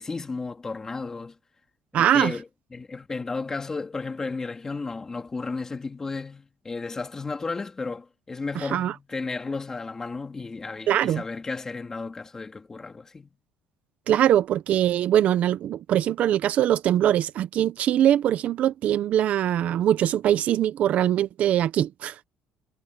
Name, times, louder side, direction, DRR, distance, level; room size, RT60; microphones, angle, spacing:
voice 1, 0.0-1.4 1.9-13.3, left 4 dB, 20° left, 2.4 m, -33 dB
voice 2, 1.9-2.3 8.6-8.9 10.9-11.2 14.1-22.2, right 11 dB, 50° right, 0.7 m, -22 dB
cardioid pair, 150°, 3 cm